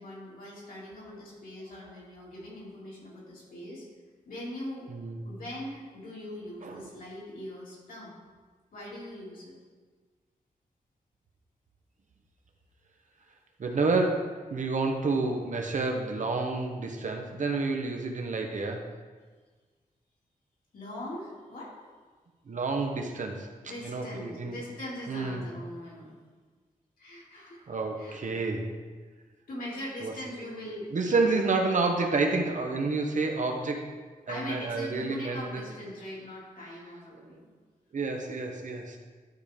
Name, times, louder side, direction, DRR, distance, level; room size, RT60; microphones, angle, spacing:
voice 1, 0.0-3.8 4.3-4.9 5.2-8.2 8.7-9.5 20.7-21.7 23.6-26.1 27.0-27.6 28.0-28.4 29.5-31.8 34.3-37.5, left 1 dB, 70° left, -6 dB, 2.6 m, -41 dB
voice 2, 4.9-5.2 6.6-6.9 13.6-18.8 22.5-23.5 23.8-24.6 25.1-25.5 27.7-28.7 30.0-30.1 30.9-33.9 34.3-35.6 37.9-39.0, right 3 dB, 55° right, 3 dB, 0.9 m, -29 dB
11.5 x 5.0 x 3.6 m, 1.4 s
wide cardioid pair, 165°, 15 cm